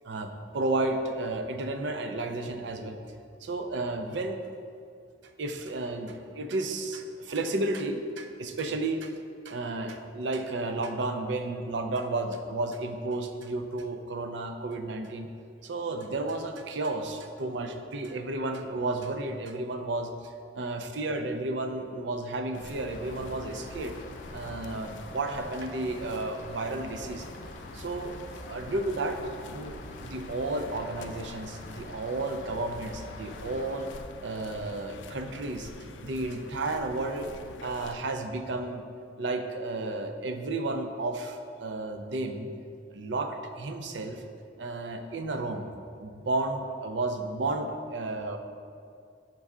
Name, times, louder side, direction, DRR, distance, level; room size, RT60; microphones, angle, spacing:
voice 1, 0.0-3.0 3.4-4.4 5.4-9.1 9.5-15.3 15.6-23.9 24.3-27.3 27.7-28.1 28.5-29.2 29.5-33.9 34.2-35.7 36.0-37.3 37.6-38.9 39.2-42.5 42.9-44.2 44.6-45.7 46.0-48.4, right 2 dB, 75° right, 6 dB, 0.5 m, -32 dB
sound 1, 22.5-38.0, left 3 dB, 90° left, 0.4 m, -46 dB
Rain, 22.9-34.0, left 2 dB, 45° left, 0.6 m, -47 dB
6.0 x 5.4 x 3.6 m, 2.4 s
head